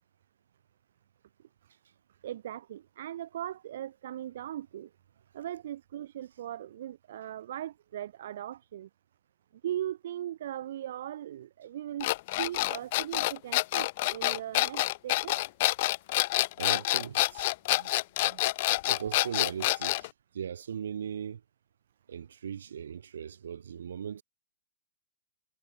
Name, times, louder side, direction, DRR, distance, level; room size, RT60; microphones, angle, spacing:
voice 1, 2.2-4.9 5.3-8.9 9.6-12.1 12.4-15.4 17.7-17.9 18.2-18.4 18.7-19.3, right 11 dB, 60° right, 1.6 m, -39 dB
sound 1, 12.0-20.1, left 19 dB, 40° left, 0.8 m, -27 dB
voice 2, 16.6-17.5 18.8-21.4 22.1-24.2, right 8 dB, 85° right, 4.9 m, -38 dB
hypercardioid pair, 160°, 0 cm